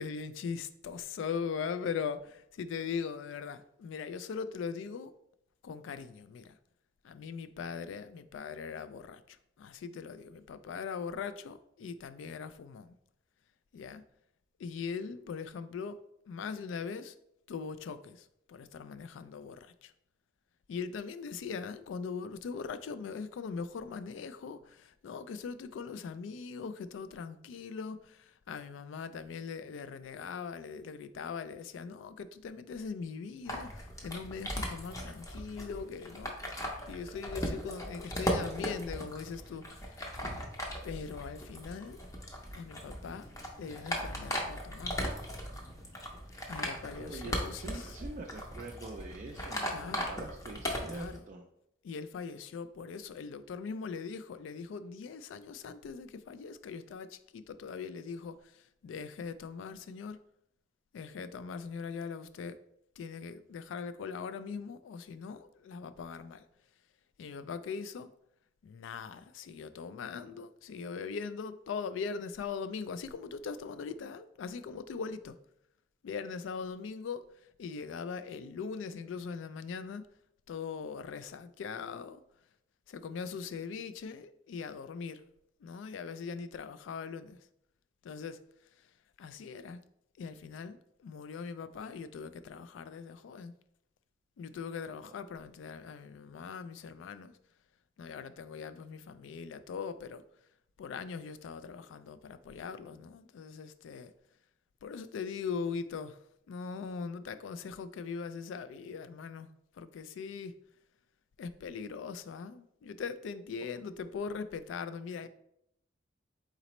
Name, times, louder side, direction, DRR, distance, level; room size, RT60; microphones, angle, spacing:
voice 1, 0.0-5.2 5.6-6.5 7.0-12.9 13.7-14.0 14.6-16.0 16.3-17.2 17.5-19.9 20.7-40.4 40.8-42.0 42.5-43.3 43.6-45.0 46.5-48.0 49.7-50.1 50.8-51.2 51.8-60.2 60.9-62.6 63.0-66.4 67.2-68.1 68.6-75.3 76.0-77.3 77.6-80.0 80.5-82.2 82.9-85.2 85.6-87.4 88.0-88.4 89.2-89.8 90.2-93.5 94.4-97.4 98.0-100.2 100.8-104.1 104.8-106.2 106.5-109.5 109.8-110.6 111.4-115.3, left 5 dB, 75° left, 0.3 m, -41 dB
sound 1, 33.5-51.2, equal, 20° left, 0.6 m, -38 dB
voice 2, 47.0-51.4, right 2 dB, 40° right, 0.3 m, -45 dB
4.1 x 3.9 x 3.0 m
head